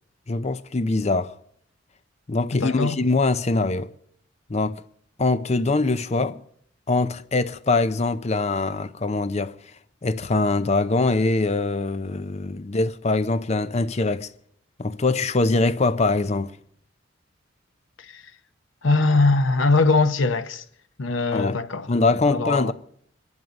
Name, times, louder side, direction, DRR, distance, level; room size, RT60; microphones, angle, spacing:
voice 1, 0.3-1.3 2.3-3.9 4.5-4.8 5.2-6.4 6.9-9.5 10.0-14.3 14.8-16.6 21.3-21.6 21.9-22.7, left 3 dB, 35° left, 0.6 m, -23 dB
voice 2, 2.5-3.0 18.0-18.2 18.8-20.6 21.0-21.9 22.3-22.7, left 3 dB, 75° left, 0.9 m, -21 dB
23.5 x 11.0 x 5.3 m
head